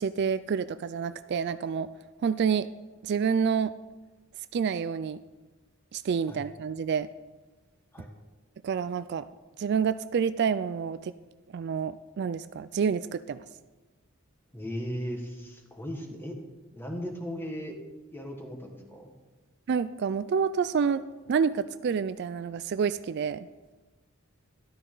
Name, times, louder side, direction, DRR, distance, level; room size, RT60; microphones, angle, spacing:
voice 1, 0.0-1.9 2.2-2.7 3.0-3.7 4.5-5.2 5.9-7.1 8.6-9.2 9.6-11.1 11.5-13.4 19.7-21.0 21.3-23.5, right 6 dB, 55° right, 13 dB, 0.3 m, -28 dB
voice 2, 14.5-16.4 16.7-17.8 18.1-19.1, equal, 10° left, 2 dB, 1.6 m, -37 dB
13.0 x 12.0 x 3.9 m, 1.2 s
head